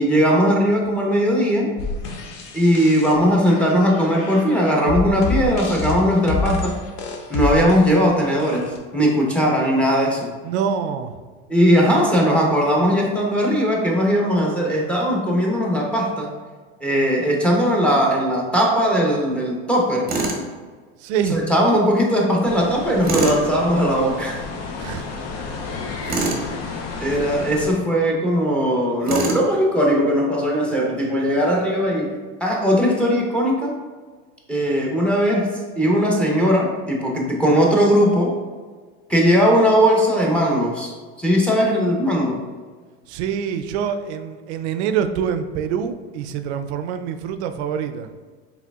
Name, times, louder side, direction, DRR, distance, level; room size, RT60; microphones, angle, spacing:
voice 1, 0.0-1.7 2.5-6.8 7.3-10.3 11.5-16.3 16.8-20.1 21.3-24.4 27.0-33.8 34.5-35.5 35.8-38.3 39.1-40.9 41.2-42.4, equal, 5° left, -2 dB, 0.8 m, -19 dB
sound 1, 1.8-8.8, left 4 dB, 80° left, 0.8 m, -28 dB
voice 2, 10.4-11.1 21.0-21.4 24.8-25.1 43.1-48.1, right 7 dB, 80° right, 9 dB, 0.5 m, -25 dB
Tools, 20.1-20.4 23.0-23.4 26.1-26.5 29.1-29.5, right 3 dB, 30° right, 0.8 m, -24 dB
sound 2, 22.5-27.7, left 4 dB, 50° left, 0.6 m, -32 dB
4.9 x 3.3 x 2.3 m, 1.5 s
supercardioid pair, 115°, 33 cm